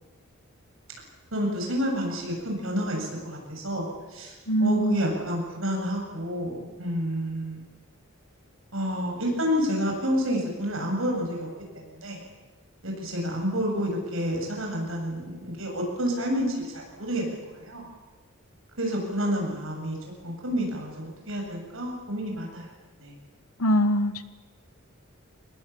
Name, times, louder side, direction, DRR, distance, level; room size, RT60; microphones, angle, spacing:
voice 1, 1.3-4.3 4.6-7.6 8.7-11.5 11.7-12.2 12.8-17.8 18.8-20.0 20.2-22.7 23.0-23.1, equal, 65° right, 1 dB, 7.7 m, -29 dB
voice 2, 4.5-5.0 23.6-24.3, equal, 85° left, 12 dB, 1.5 m, -23 dB
25.0 x 20.5 x 8.7 m, 1.2 s
head